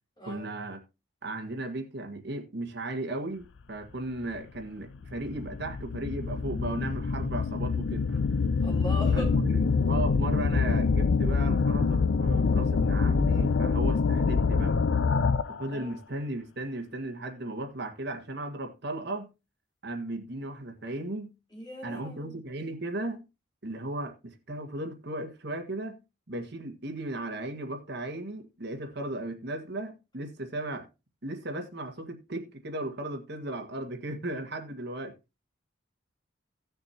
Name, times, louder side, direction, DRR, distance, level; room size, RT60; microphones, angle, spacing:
voice 1, 0.2-0.8 1.2-8.2 9.1-14.8 15.5-19.3 19.8-21.3 21.8-23.2 23.6-26.0 26.3-30.9 31.2-35.1, right 1 dB, 60° right, 1.7 m, -36 dB
sound 1, 4.2-4.3 5.0-15.7, left 4 dB, 75° left, 0.5 m, -25 dB
voice 2, 8.6-9.4 15.7-15.9 21.5-22.4, left 1 dB, 25° left, 3.4 m, -39 dB
17.0 x 6.6 x 2.8 m
head